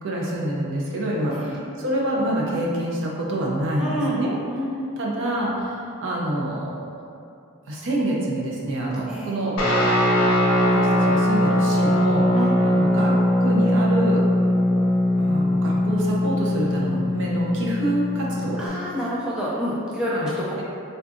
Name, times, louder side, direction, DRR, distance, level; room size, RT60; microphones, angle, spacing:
voice 1, 0.0-4.3 5.0-6.7 7.7-9.5 10.6-12.3 12.6-13.1 13.4-14.2 15.2-18.6 20.1-20.3, right 1 dB, 60° right, -3 dB, 0.5 m, -26 dB
voice 2, 1.2-1.6 3.8-4.2 4.5-5.0 9.1-9.4 12.3-12.5 18.6-20.5, equal, 5° right, -7 dB, 0.3 m, -28 dB
Guitar, 9.6-18.7, left 1 dB, 80° left, 0.7 m, -20 dB
3.7 x 2.3 x 2.5 m, 2.5 s
head